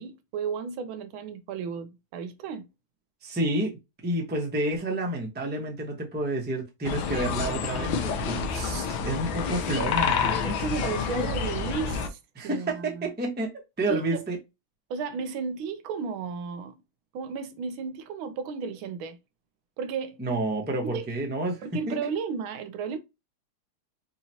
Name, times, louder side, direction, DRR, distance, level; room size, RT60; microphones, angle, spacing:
voice 1, 0.0-2.7 10.4-13.1 13.9-14.2 14.9-16.8 17.1-19.2 19.8-20.2 20.8-21.1 21.6-23.0, right 6 dB, 80° right, 1.4 m, -33 dB
voice 2, 3.2-3.7 4.0-10.6 12.4-13.5 13.8-14.4 20.2-22.1, right 1 dB, 10° right, 0.5 m, -30 dB
sound 1, 6.8-12.1, left 6 dB, 75° left, 1.4 m, -28 dB
4.1 x 2.9 x 2.7 m
omnidirectional pair, 2.3 m